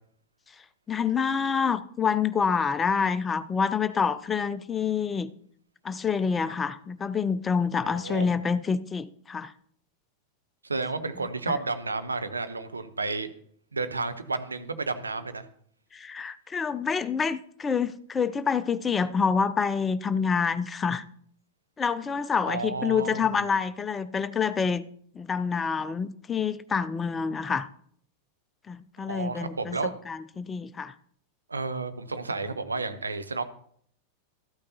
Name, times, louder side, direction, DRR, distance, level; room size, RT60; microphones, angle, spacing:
voice 1, 0.9-5.3 5.8-9.5 11.5-11.6 15.9-21.0 21.8-24.8 25.1-27.7 28.7-29.8 30.1-30.9, left 6 dB, 20° left, 14 dB, 0.5 m, -27 dB
voice 2, 7.8-8.3 10.6-13.3 13.7-15.4 22.5-23.3 29.0-30.0 31.5-33.4, right 3 dB, 75° right, 9 dB, 0.7 m, -31 dB
13.5 x 8.6 x 2.8 m, 0.62 s
figure-of-eight pair, 90°, 0 cm